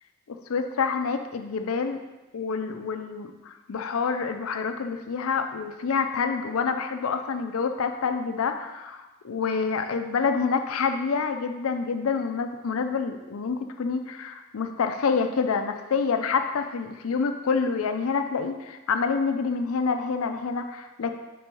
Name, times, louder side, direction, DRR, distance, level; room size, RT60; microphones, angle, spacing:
voice 1, 0.3-2.0 2.3-21.1, left 5 dB, 85° left, 7 dB, 0.5 m, -27 dB
4.5 x 4.4 x 5.3 m, 1.1 s
head